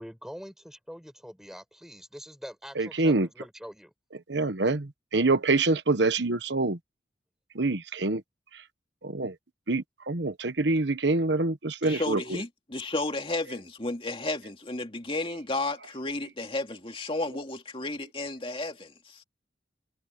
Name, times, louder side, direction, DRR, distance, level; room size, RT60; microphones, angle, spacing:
voice 1, 0.0-3.9, equal, ahead, 6.0 m, -44 dB
voice 2, 2.8-3.3 4.3-6.8 7.5-8.2 8.5-8.6 9.0-9.3 9.7-12.2, right 3 dB, 70° right, 1.2 m, -26 dB
voice 3, 11.8-19.2, left 2 dB, 30° left, 2.5 m, -33 dB
head